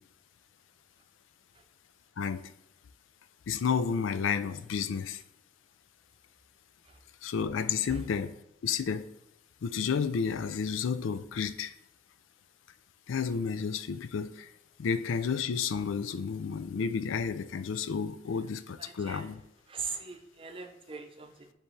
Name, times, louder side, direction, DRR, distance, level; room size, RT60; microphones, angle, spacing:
voice 1, 2.2-2.5 3.5-5.2 7.2-8.4 8.6-9.1 9.6-11.7 13.1-14.5 14.8-19.4, left 6 dB, 90° left, 0.4 m, -31 dB
voice 2, 18.8-19.3 19.7-21.5, right 5 dB, 30° right, 0.6 m, -41 dB
10.0 x 3.5 x 3.2 m
head